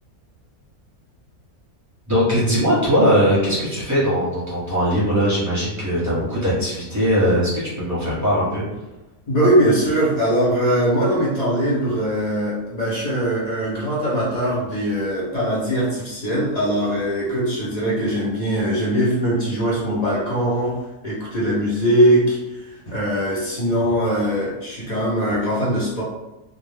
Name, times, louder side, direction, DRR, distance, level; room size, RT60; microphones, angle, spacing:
voice 1, 2.1-8.6, equal, 15° right, -8 dB, 0.8 m, -20 dB
voice 2, 9.3-20.7 21.0-26.0, equal, 40° left, -6 dB, 0.6 m, -21 dB
2.4 x 2.1 x 3.2 m, 0.99 s
omnidirectional pair, 1.6 m